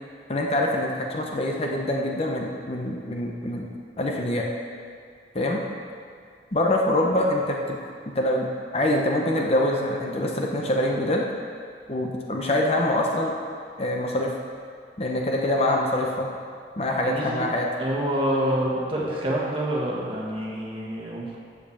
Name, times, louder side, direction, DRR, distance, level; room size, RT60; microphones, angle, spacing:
voice 1, 0.3-3.7 4.0-4.5 5.3-5.6 6.5-7.8 8.1-11.2 11.9-13.3 13.8-14.3 15.0-16.3 16.8-17.7, left 1 dB, 35° left, 0 dB, 0.8 m, -25 dB
voice 2, 17.0-17.5 17.8-21.4, right 1 dB, 30° right, -4 dB, 1.6 m, -27 dB
7.9 x 7.0 x 7.1 m, 2.3 s
head